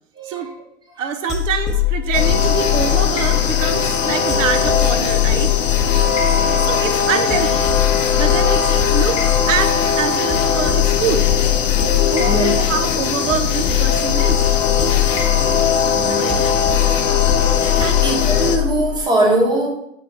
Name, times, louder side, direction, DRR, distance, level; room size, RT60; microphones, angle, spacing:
voice 1, 1.0-5.5 6.6-7.6 8.2-11.3 12.1-14.4 16.1-16.4 17.8-18.0, right 7 dB, 85° right, 7 dB, 0.6 m, -25 dB
sound 1, 1.3-19.0, left 13 dB, 20° left, 0.7 m, -21 dB
sound 2, 2.1-18.6, left 6 dB, 85° left, 0.6 m, -20 dB
voice 2, 15.9-16.4 16.9-17.5 18.0-19.7, right 2 dB, 10° right, -1 dB, 0.8 m, -21 dB
3.6 x 2.3 x 4.2 m, 0.75 s
hypercardioid pair, 110°, 37 cm